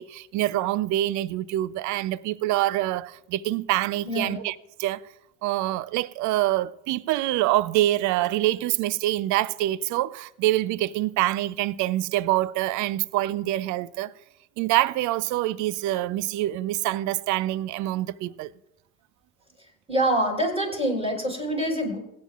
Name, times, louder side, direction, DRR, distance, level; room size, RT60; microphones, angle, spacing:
voice 1, 0.0-5.0 5.4-14.1 14.6-18.5, right 15 dB, 45° right, 0.6 m, -25 dB
voice 2, 4.0-4.4 19.9-22.0, right 1 dB, 15° right, 5.5 m, -25 dB
25.5 x 9.4 x 2.4 m
hypercardioid pair, 65°, 41 cm